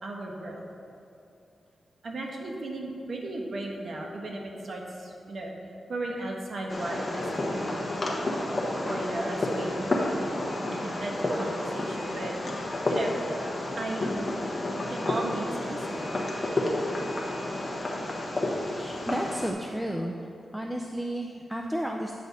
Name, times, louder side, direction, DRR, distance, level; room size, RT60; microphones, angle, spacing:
voice 1, 0.0-0.6 2.0-5.5 5.9-7.9 8.9-9.9 10.7-12.3 12.9-13.2 13.8-14.1 14.9-16.2, right 2 dB, 60° right, 0 dB, 1.3 m, -35 dB
Fireworks, 6.7-19.5, left 1 dB, 30° left, 1.2 m, -30 dB
voice 2, 18.8-20.3 20.5-22.2, equal, 5° right, 1 dB, 0.5 m, -32 dB
9.8 x 6.1 x 4.1 m, 2.8 s
cardioid pair, 85°, 0 cm